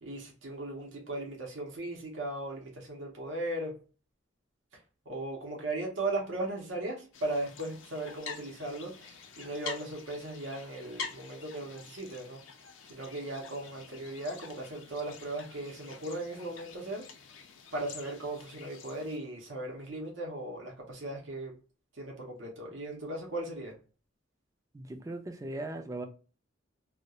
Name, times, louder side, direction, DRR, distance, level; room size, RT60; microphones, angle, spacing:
voice 1, 0.0-3.7 5.1-12.4 12.9-17.0 17.7-21.5 21.9-23.8, right 2 dB, 65° right, 0.6 m, -37 dB
sound 1, 7.1-19.2, left 5 dB, 75° left, 0.5 m, -47 dB
voice 2, 24.7-26.1, right 2 dB, 15° right, 0.3 m, -38 dB
2.3 x 2.1 x 2.7 m
head